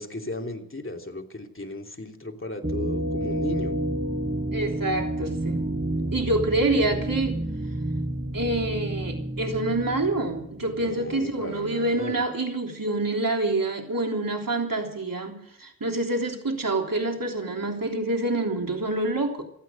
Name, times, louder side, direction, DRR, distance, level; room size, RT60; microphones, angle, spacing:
voice 1, 0.0-3.8 10.7-12.2, left 2 dB, 35° left, 2.8 m, -36 dB
sound 1, 2.6-11.3, right 1 dB, 30° right, 6.3 m, -30 dB
voice 2, 4.5-5.7 6.1-7.4 8.3-19.4, right 2 dB, 70° right, 3.5 m, -27 dB
28.0 x 9.5 x 5.4 m
wide cardioid pair, 50°, 35 cm